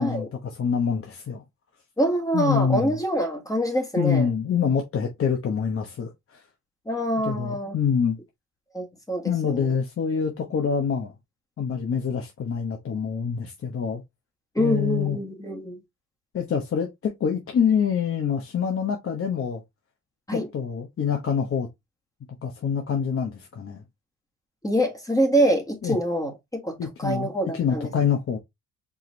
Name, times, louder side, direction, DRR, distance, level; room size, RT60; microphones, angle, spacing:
voice 1, 0.0-1.4 2.3-3.0 4.0-6.4 7.2-8.2 9.2-11.1 11.6-14.0 14.6-15.2 16.3-19.6 20.3-21.7 22.4-23.8 25.8-26.0 26.8-28.4, left 7 dB, 45° left, 1.0 m, -26 dB
voice 2, 2.0-4.3 6.9-7.7 8.7-9.7 14.5-15.8 20.3-20.5 24.6-26.3 26.6-27.9, right 1 dB, 10° left, 1.4 m, -25 dB
4.7 x 2.9 x 3.2 m
cardioid pair, 90°, 30 cm